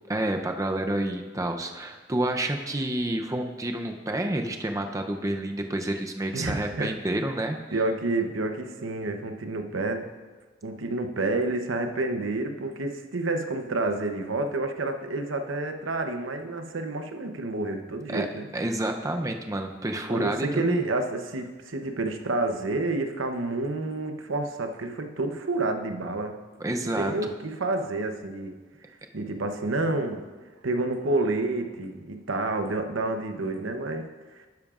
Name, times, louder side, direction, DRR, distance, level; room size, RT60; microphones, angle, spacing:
voice 1, 0.1-7.6 18.1-18.3 18.5-20.8 26.6-27.1, right 1 dB, 15° right, 4 dB, 0.6 m, -29 dB
voice 2, 6.3-7.3 7.7-10.1 10.6-18.5 20.1-26.4 27.0-28.5 29.1-30.2 30.6-34.1, right 2 dB, 90° right, 6 dB, 0.8 m, -29 dB
12.0 x 10.5 x 2.5 m, 1.3 s
head